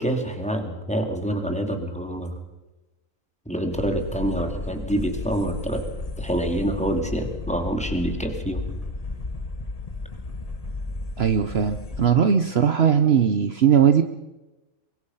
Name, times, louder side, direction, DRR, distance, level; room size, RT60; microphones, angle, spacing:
voice 1, 0.0-2.4 3.5-5.8 6.2-8.6, right 1 dB, 5° left, 5 dB, 2.5 m, -26 dB
sound 1, 3.7-12.1, left 3 dB, 30° left, 1.2 m, -33 dB
voice 2, 11.2-14.0, right 8 dB, 55° right, 9 dB, 1.0 m, -19 dB
24.0 x 21.5 x 5.6 m, 1.1 s
omnidirectional pair, 1.4 m